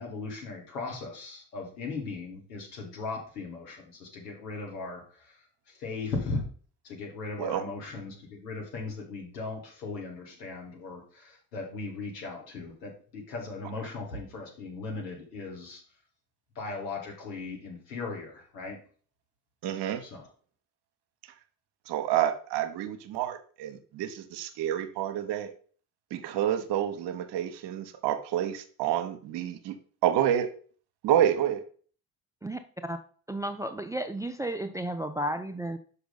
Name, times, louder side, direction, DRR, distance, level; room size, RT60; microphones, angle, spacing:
voice 1, 0.0-6.4 6.8-15.8 16.6-18.8 20.0-20.3, left 3 dB, 80° left, -1 dB, 1.9 m, -38 dB
voice 2, 19.6-20.0 21.9-25.5 26.1-29.7 30.0-30.5 31.0-31.6, right 11 dB, 60° right, 8 dB, 0.9 m, -28 dB
voice 3, 32.4-33.0 33.3-35.8, right 1 dB, 5° right, 9 dB, 0.4 m, -33 dB
5.7 x 5.5 x 4.1 m, 0.43 s
figure-of-eight pair, 45°, 48 cm